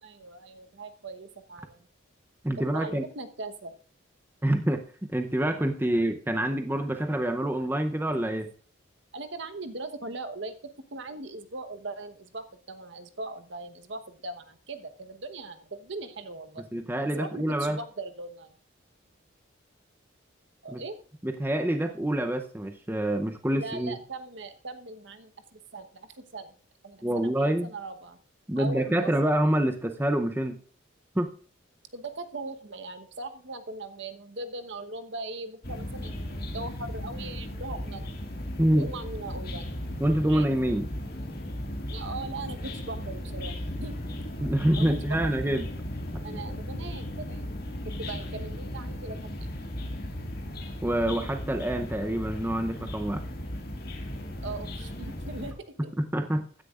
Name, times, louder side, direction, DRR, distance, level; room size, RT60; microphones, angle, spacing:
voice 1, 0.0-1.9 2.6-3.7 9.1-10.5 10.9-16.6 17.1-18.5 20.6-20.9 23.5-26.6 26.8-28.2 28.6-29.1 31.9-38.1 38.7-39.7 40.3-40.5 41.9-43.5 43.8-44.0 44.8-45.0 46.2-47.5 47.8-49.5 54.4-55.9, right 2 dB, 60° right, 8 dB, 1.0 m, -40 dB
voice 2, 2.4-3.0 4.4-8.5 16.7-17.8 20.7-20.8 21.2-24.0 27.0-27.7 28.5-30.6 31.2-31.3 38.6-38.9 40.0-40.9 44.4-45.7 50.8-53.2 56.0-56.4, right 1 dB, 10° right, 6 dB, 0.6 m, -26 dB
sound 1, 35.6-55.5, left 1 dB, 50° left, 2.0 m, -36 dB
15.5 x 10.0 x 2.4 m, 0.43 s
head